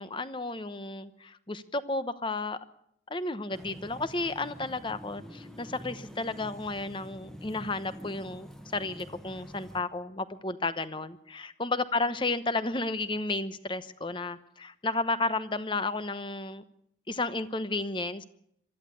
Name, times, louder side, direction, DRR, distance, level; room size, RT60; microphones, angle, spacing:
voice 1, 0.0-2.6 3.1-16.6 17.1-18.2, left 3 dB, 30° left, 13 dB, 1.0 m, -32 dB
sound 1, 3.5-9.8, equal, 5° left, 1.4 m, -46 dB
23.0 x 14.0 x 8.3 m, 0.73 s
head